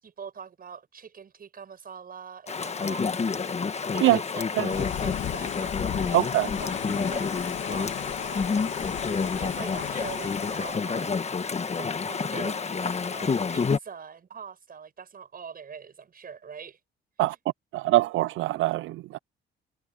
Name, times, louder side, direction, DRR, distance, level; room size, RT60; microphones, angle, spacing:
voice 1, 0.0-3.6 3.9-6.2 6.6-8.8 9.4-11.2 11.7-16.8 17.3-17.4, right 6 dB, 45° right, 6.7 m, -43 dB
Chatter / Stream, 2.5-13.8, left 5 dB, 35° left, 1.4 m, -29 dB
sound 1, 4.7-10.8, left 11 dB, 75° left, 2.6 m, -35 dB
voice 2, 6.1-6.5 17.2-17.4 17.7-19.2, right 17 dB, 80° right, 0.4 m, -23 dB
cardioid pair, 90°, 20 cm